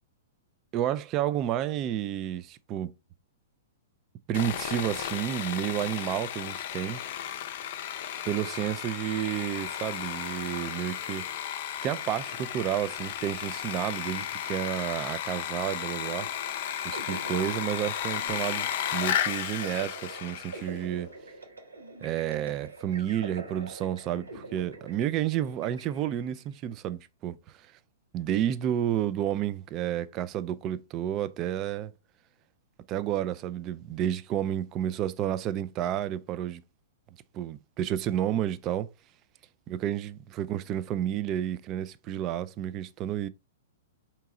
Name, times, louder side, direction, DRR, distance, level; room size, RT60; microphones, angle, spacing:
voice 1, 0.7-2.9 4.3-7.0 8.3-11.2 11.8-16.3 16.8-18.7 18.9-21.1 22.0-27.4 28.1-31.9 32.9-36.6 37.3-38.9 39.7-43.3, right 11 dB, 35° right, 0.4 m, -31 dB
Sawing, 4.3-20.8, left 10 dB, 50° left, 0.5 m, -34 dB
sound 1, 16.0-26.5, right 2 dB, 90° right, 1.1 m, -45 dB
4.6 x 2.9 x 3.6 m
figure-of-eight pair, 110°, 0 cm